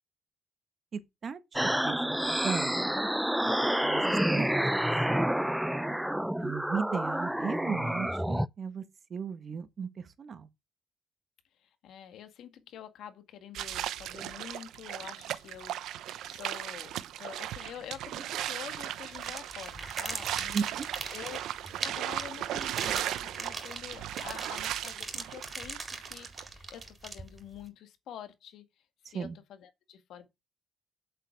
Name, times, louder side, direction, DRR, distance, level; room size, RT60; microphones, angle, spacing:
voice 1, 0.9-2.2 2.4-3.0 3.8-4.9 6.4-8.8 9.1-10.5 20.5-20.9 29.1-29.4, right 6 dB, 50° right, 1.4 m, -36 dB
sound 1, 1.5-8.5, equal, 5° right, 0.5 m, -29 dB
voice 2, 5.8-6.2 11.6-16.9 17.2-20.6 21.1-21.5 21.8-28.7 29.1-30.3, left 9 dB, 80° left, 1.9 m, -47 dB
sound 2, 13.5-26.4, right 12 dB, 85° right, 0.9 m, -37 dB
sound 3, 19.1-27.6, right 3 dB, 30° right, 4.1 m, -40 dB
8.6 x 7.7 x 4.7 m
cardioid pair, 90°, 0 cm